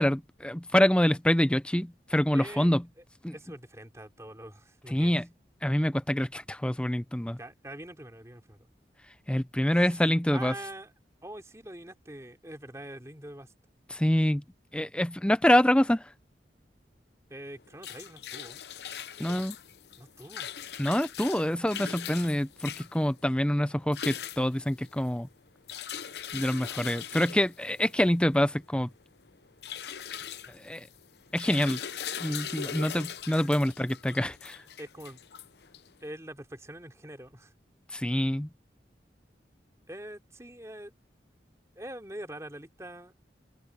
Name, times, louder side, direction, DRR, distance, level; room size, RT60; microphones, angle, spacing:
voice 1, 0.0-2.8 3.2-3.3 4.9-5.3 5.6-7.4 9.1-10.5 13.9-14.4 14.7-16.1 19.2-19.6 20.8-25.3 26.3-28.9 30.5-30.9 31.3-31.8 32.2-34.6 37.9-38.5, left 1 dB, 5° left, 0.5 m, -26 dB
voice 2, 2.3-2.7 3.3-5.2 7.4-8.6 10.3-10.9 11.2-13.5 17.3-18.6 20.0-20.5 34.8-35.2 36.0-37.5 39.9-40.9 41.7-43.1, right 1 dB, 15° right, 3.1 m, -44 dB
sound 1, 17.5-36.1, left 8 dB, 70° left, 0.8 m, -41 dB
open air
head